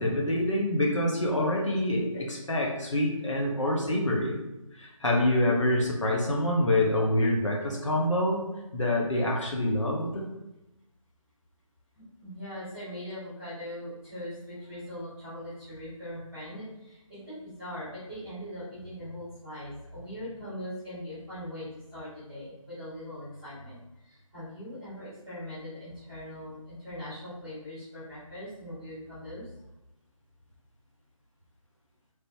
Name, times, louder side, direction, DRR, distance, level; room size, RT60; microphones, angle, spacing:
voice 1, 0.0-4.4 4.7-8.4 8.7-10.3, left 1 dB, 60° left, -2 dB, 0.7 m, -26 dB
voice 2, 11.9-29.5, left 1 dB, 5° right, -15 dB, 1.0 m, -41 dB
3.2 x 2.1 x 2.8 m, 0.96 s
figure-of-eight pair, 155°, 18 cm